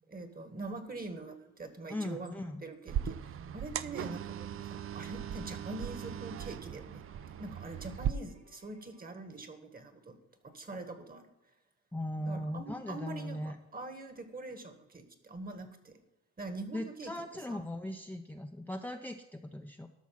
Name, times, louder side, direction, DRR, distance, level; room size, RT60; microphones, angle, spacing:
voice 1, 0.1-2.3 2.6-7.0 7.3-10.2 10.4-11.3 12.2-16.0 16.4-17.1 17.5-17.6, right 2 dB, 30° right, 8 dB, 1.7 m, -44 dB
voice 2, 1.9-2.6 11.9-13.6 16.7-19.9, left 1 dB, 5° left, 5 dB, 0.6 m, -38 dB
sound 1, 2.9-8.1, right 10 dB, 45° right, 0.5 m, -38 dB
Bowed string instrument, 4.1-9.4, right 3 dB, 70° right, 3.4 m, -63 dB
12.5 x 6.1 x 5.9 m, 1.0 s
cardioid pair, 90°, 30 cm